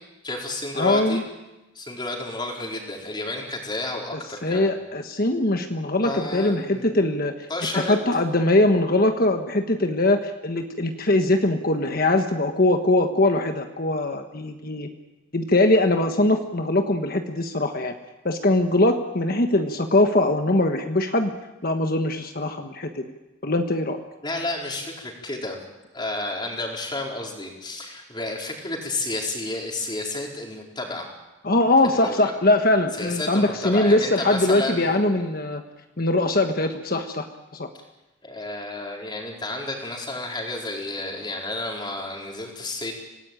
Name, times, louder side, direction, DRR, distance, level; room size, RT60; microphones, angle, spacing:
voice 1, 0.2-1.2 1.7-4.7 6.0-6.9 7.5-8.0 24.2-25.6 25.9-31.1 31.9-32.3 33.0-35.0 38.2-42.9, left 2 dB, 20° left, 0 dB, 4.4 m, -31 dB
voice 2, 0.7-1.2 4.4-7.3 7.7-14.9 15.3-17.9 18.2-21.3 21.6-23.0 23.4-24.0 31.4-35.6 36.0-37.3 37.5-37.7, left 2 dB, 45° left, 6 dB, 1.4 m, -21 dB
26.5 x 18.5 x 9.2 m, 1.0 s
head